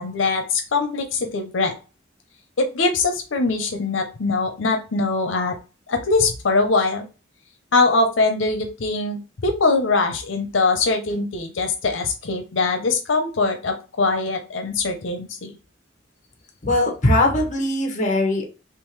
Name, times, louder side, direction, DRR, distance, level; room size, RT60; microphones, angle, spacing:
voice 1, 0.0-1.7 2.6-5.5 5.9-7.1 7.7-15.5, left 3 dB, 85° left, 5 dB, 0.6 m, -22 dB
voice 2, 16.6-18.4, left 1 dB, 40° left, 3 dB, 1.0 m, -20 dB
3.6 x 2.9 x 3.2 m, 0.32 s
head